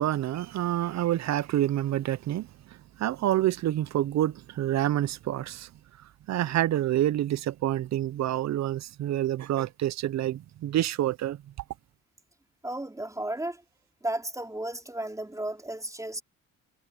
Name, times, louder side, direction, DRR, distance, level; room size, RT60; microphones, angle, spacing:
voice 1, 0.0-2.5 3.0-5.7 6.3-11.4, right 13 dB, 65° right, 0.7 m, -27 dB
voice 2, 12.6-13.6 14.0-16.2, right 1 dB, 10° right, 4.0 m, -34 dB
cardioid pair, 90°, 30 cm